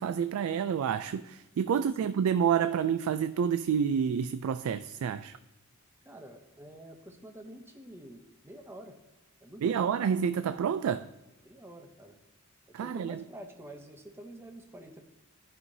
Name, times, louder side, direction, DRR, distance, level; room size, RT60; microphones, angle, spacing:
voice 1, 0.0-5.4 9.6-11.1 12.7-13.2, right 7 dB, 85° right, 0.3 m, -29 dB
voice 2, 1.7-2.2 6.1-9.0 9.4-9.9 11.4-12.2 12.8-15.0, right 1 dB, 10° right, 0.7 m, -48 dB
13.5 x 5.6 x 2.7 m
head